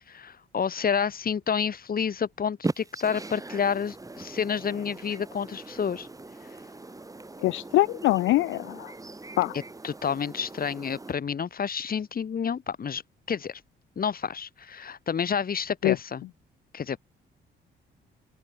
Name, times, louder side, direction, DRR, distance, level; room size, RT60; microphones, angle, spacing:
voice 1, 0.1-6.1 9.5-13.0 13.3-13.6 14.0-16.2 16.7-17.0, left 7 dB, 45° left, 5.4 m, -29 dB
sound 1, 2.6-11.1, right 2 dB, 15° right, 4.1 m, -39 dB
voice 2, 7.4-8.9 9.4-9.5 15.8-16.0, left 17 dB, 80° left, 0.5 m, -23 dB
open air
cardioid pair, 90°, 20 cm